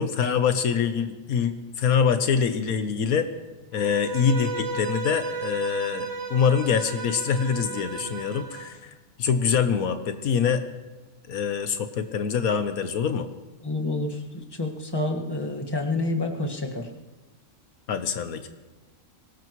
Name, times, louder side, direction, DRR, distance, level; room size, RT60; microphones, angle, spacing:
voice 1, 0.0-3.3 3.7-10.6 11.3-13.3 17.9-18.5, left 7 dB, 80° left, 9 dB, 1.4 m, -25 dB
Bowed string instrument, 3.7-8.7, right 4 dB, 50° right, 1.5 m, -34 dB
voice 2, 13.6-14.2 14.6-16.9, left 2 dB, 15° left, 1 dB, 1.6 m, -28 dB
23.5 x 19.0 x 3.1 m, 1.2 s
omnidirectional pair, 1.5 m